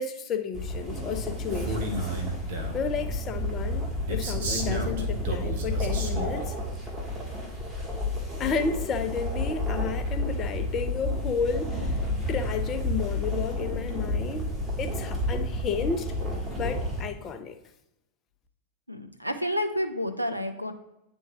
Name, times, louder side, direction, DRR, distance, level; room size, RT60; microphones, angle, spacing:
voice 1, 0.0-2.1 2.7-6.5 8.4-12.0 12.3-14.5 14.8-16.1 16.6-17.6, left 5 dB, 30° left, 0.6 m, -32 dB
sound 1, 0.5-17.0, left 1 dB, 15° right, 1.9 m, -31 dB
Male speech man speaking, 1.5-2.8 4.1-6.5, right 2 dB, 55° right, 0.9 m, -33 dB
voice 2, 18.9-20.7, equal, 90° right, 0.5 m, -30 dB
9.2 x 3.6 x 3.0 m
figure-of-eight pair, 90°, 0 cm